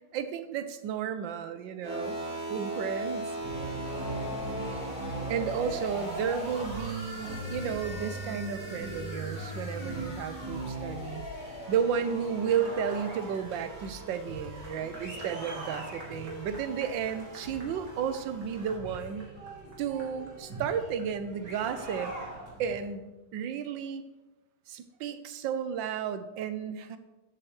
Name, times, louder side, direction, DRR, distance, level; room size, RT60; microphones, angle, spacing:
voice 1, 0.1-2.2 2.5-3.3 5.3-11.2 11.7-19.3 19.8-22.1 22.6-24.0 24.7-27.0, right 7 dB, 90° right, 10 dB, 1.5 m, -33 dB
sound 1, 1.8-18.8, equal, 70° left, 4.8 m, -41 dB
sound 2, 3.3-22.9, right 1 dB, 65° right, 2.8 m, -41 dB
13.0 x 7.7 x 3.2 m, 1.1 s
omnidirectional pair, 2.0 m